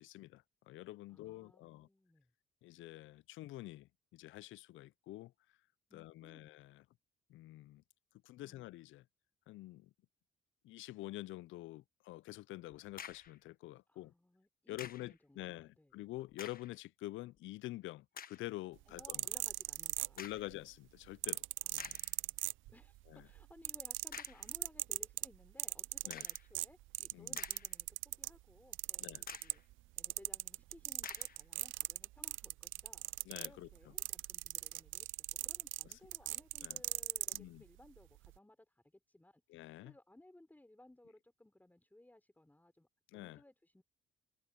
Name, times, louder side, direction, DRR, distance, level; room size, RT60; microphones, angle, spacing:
voice 1, 0.0-1.9 2.6-5.3 5.9-6.8 7.3-7.8 8.2-9.0 9.5-9.9 10.6-14.1 14.7-19.3 20.2-21.4 21.7-22.0 23.1-23.2 26.0-26.3 27.1-27.4 29.0-29.2 33.3-33.7 35.9-36.0 36.6-36.8 37.3-37.6 39.5-39.9 43.1-43.4, left 17 dB, 75° left, 0.4 m, -47 dB
voice 2, 1.1-2.3 5.9-6.6 8.4-8.7 13.9-16.0 18.9-20.2 21.6-22.4 22.7-29.6 30.0-39.4 39.8-43.8, left 1 dB, 10° left, 3.9 m, -62 dB
sound 1, 13.0-13.4 14.8-15.2 16.3-16.8 17.4-17.5 18.1-18.5 20.2-20.6 21.2-21.3 21.8-22.2 24.1-24.5 26.1-26.5 27.1-27.9 28.3-28.4 29.3-29.6 31.0-31.4, left 8 dB, 45° left, 1.1 m, -50 dB
sound 2, 18.8-20.5 21.2-23.0 23.3-28.4 28.7-29.7 30.0-37.4 38.2-38.3, right 17 dB, 80° right, 0.4 m, -39 dB
cardioid pair, 90°, 20 cm